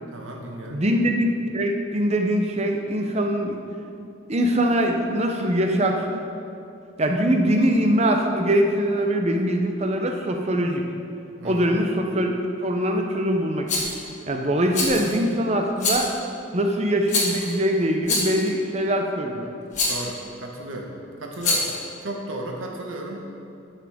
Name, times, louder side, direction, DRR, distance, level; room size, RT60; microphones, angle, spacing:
voice 1, 0.1-0.8 11.4-11.7 19.9-20.9 21.2-21.7 22.0-23.2, right 1 dB, 80° right, 0 dB, 1.2 m, -34 dB
voice 2, 0.7-3.6 4.3-6.2 7.0-10.8 11.4-13.7 14.3-16.1 16.5-19.5, equal, 30° right, 3 dB, 0.7 m, -22 dB
Rattle, 13.7-14.0 14.7-15.2 15.8-16.2 17.1-17.5 18.0-18.5 19.7-20.1 21.3-21.8, left 3 dB, 35° left, 1.5 m, -25 dB
12.5 x 6.2 x 3.6 m, 2.6 s
head